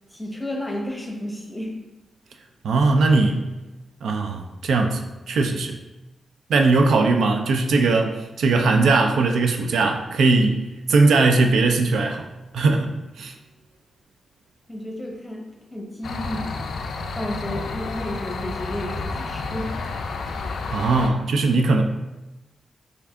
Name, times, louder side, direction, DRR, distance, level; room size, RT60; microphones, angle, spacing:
voice 1, 0.1-1.8 14.7-16.5 17.1-19.7, left 1 dB, 5° left, -1 dB, 0.7 m, -32 dB
voice 2, 2.6-3.4 4.0-5.0 5.3-5.8 6.5-12.3 12.5-13.3 20.7-21.8, right 3 dB, 85° right, 4 dB, 0.3 m, -19 dB
sound 1, 16.0-21.1, left 3 dB, 80° left, 0.3 m, -30 dB
3.2 x 2.6 x 3.5 m, 1.0 s
cardioid pair, 100°, 0 cm